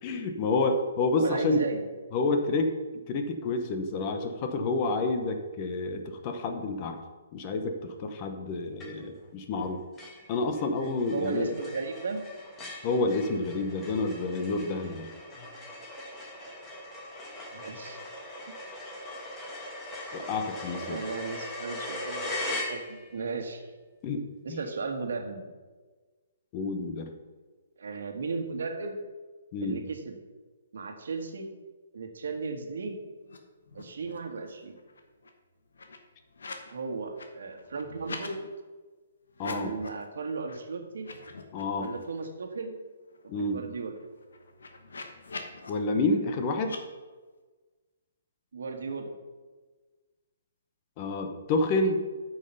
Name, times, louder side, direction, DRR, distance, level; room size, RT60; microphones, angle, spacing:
voice 1, 0.0-1.6 2.1-2.7 3.1-7.0 7.3-9.8 10.3-11.5 12.8-15.1 20.1-21.0 24.0-24.6 26.5-27.1 29.5-29.8 39.4-39.7 41.5-41.9 43.3-43.6 45.7-46.7 51.0-52.0, left 3 dB, 30° left, 6 dB, 0.9 m, -29 dB
voice 2, 1.2-1.9 10.6-12.2 15.3-15.5 17.5-18.0 18.5-18.6 20.8-22.3 22.7-23.6 24.4-25.4 27.8-28.9 29.6-30.1 30.7-31.5 31.9-33.0 33.7-34.7 36.7-38.5 39.4-41.1 41.8-42.8 43.2-43.9 48.5-49.1, right 4 dB, 75° right, 4 dB, 1.5 m, -35 dB
sound 1, 8.8-9.2 9.6-9.7 10.0-23.2, left 1 dB, 15° left, 1.8 m, -40 dB
sound 2, 33.2-33.4 33.6-34.3 34.6-36.7 37.0-38.3 39.3-40.0 40.4-40.6 40.9-42.3 42.7-42.8 43.0-45.7 46.6-46.8, left 3 dB, 90° left, 1.2 m, -45 dB
8.9 x 5.6 x 5.5 m, 1.3 s
hypercardioid pair, 160°, 0 cm